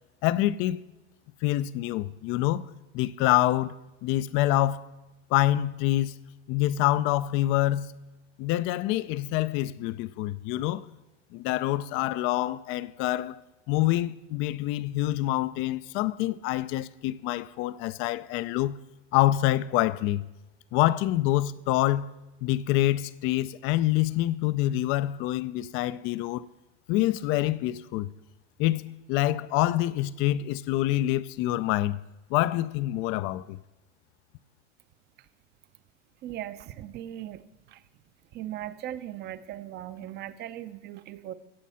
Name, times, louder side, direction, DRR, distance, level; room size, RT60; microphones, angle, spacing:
voice 1, 0.2-0.8 1.4-2.7 2.9-3.7 4.0-4.9 5.3-6.1 6.5-7.9 8.4-10.9 11.3-13.4 13.7-18.8 19.1-20.2 20.7-22.1 22.4-26.5 26.9-28.1 28.6-28.8 29.1-32.0 32.3-33.6, left 15 dB, 35° left, 0.5 m, -26 dB
voice 2, 36.2-37.8 38.3-41.3, right 12 dB, 30° right, 0.7 m, -39 dB
16.5 x 7.4 x 5.6 m
supercardioid pair, 130°, 35 cm